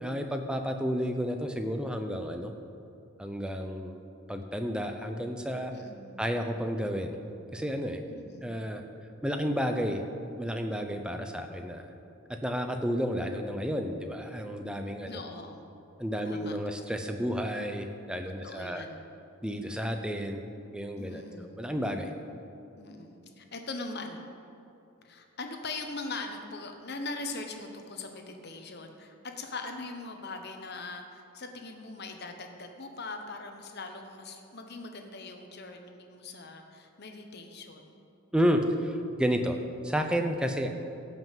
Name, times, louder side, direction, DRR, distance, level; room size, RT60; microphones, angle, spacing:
voice 1, 0.0-2.5 3.2-4.0 4.3-5.7 6.2-7.2 7.5-8.0 8.4-8.8 9.2-10.0 10.4-11.9 12.4-15.2 16.0-18.8 19.4-20.4 20.7-22.1 38.3-39.6 39.8-40.7, equal, 5° right, 5 dB, 0.7 m, -31 dB
voice 2, 5.7-6.2 8.1-8.5 15.0-15.6 16.2-16.7 18.4-19.0 21.0-21.6 22.8-24.2 25.0-38.0, left 3 dB, 50° left, 4 dB, 1.2 m, -41 dB
16.5 x 5.8 x 7.4 m, 2.6 s
head